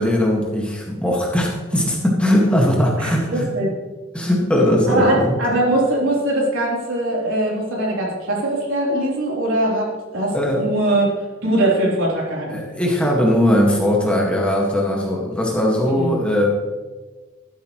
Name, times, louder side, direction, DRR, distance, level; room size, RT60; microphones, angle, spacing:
voice 1, 0.0-3.5 4.1-5.4 10.3-10.7 12.5-16.4, left 1 dB, 5° left, -3 dB, 1.8 m, -19 dB
voice 2, 3.0-3.7 4.9-11.1 11.4-12.6 16.0-16.2, right 1 dB, 75° right, -4 dB, 3.6 m, -21 dB
12.5 x 12.0 x 3.2 m, 1.3 s
head